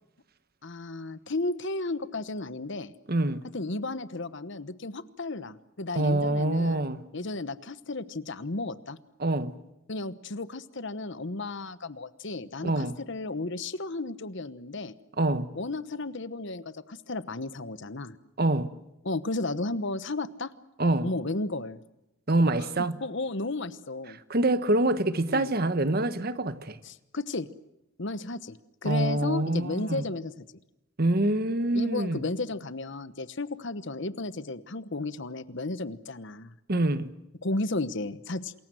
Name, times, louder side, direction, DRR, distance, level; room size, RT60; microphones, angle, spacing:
voice 1, 0.6-2.9 3.5-6.8 7.1-9.0 9.9-14.9 15.6-18.2 19.0-20.5 21.0-21.8 22.6-22.7 23.0-24.2 25.3-25.5 26.8-27.5 28.0-28.6 28.8-30.4 31.7-36.5 37.4-38.5, left 2 dB, 55° left, 1.1 m, -33 dB
voice 2, 3.1-3.4 5.9-7.0 9.2-9.5 12.6-13.0 15.2-15.5 18.4-18.7 20.8-21.1 22.3-23.0 24.3-26.8 28.8-30.1 31.0-32.2 36.7-37.1, right 2 dB, 45° right, 1.2 m, -25 dB
27.5 x 22.0 x 7.8 m
head